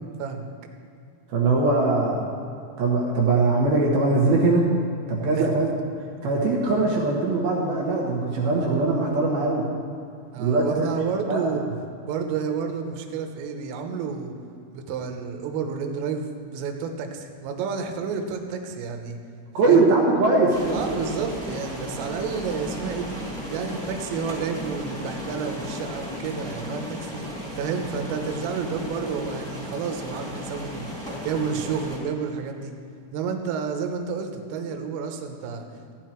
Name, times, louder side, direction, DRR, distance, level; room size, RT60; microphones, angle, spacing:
voice 1, 1.3-2.4 2.8-4.7 5.1-5.7 6.2-9.7 10.4-10.9 11.3-11.4 19.5-20.9, right 3 dB, 65° right, -2 dB, 2.5 m, -21 dB
voice 2, 10.3-11.6 12.1-14.3 14.7-19.2 19.6-19.9 20.7-23.2 23.5-27.3 27.6-30.9 31.2-32.7 33.1-35.9, right 6 dB, 80° right, 4 dB, 3.5 m, -30 dB
sound 1, 20.5-32.0, left 1 dB, ahead, 1.6 m, -35 dB
16.0 x 10.5 x 4.5 m, 2.6 s
omnidirectional pair, 5.9 m